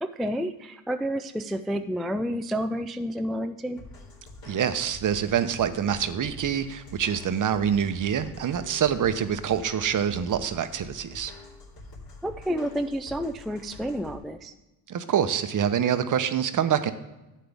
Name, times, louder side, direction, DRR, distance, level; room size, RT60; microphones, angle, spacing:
voice 1, 0.0-3.8 12.2-14.5, equal, ahead, 7 dB, 0.3 m, -30 dB
sound 1, 3.8-14.2, left 2 dB, 50° left, 3.6 m, -46 dB
voice 2, 4.5-11.3 14.9-16.9, right 8 dB, 40° right, 11 dB, 0.9 m, -26 dB
12.0 x 8.5 x 3.5 m, 1.0 s
supercardioid pair, 85°, 46 cm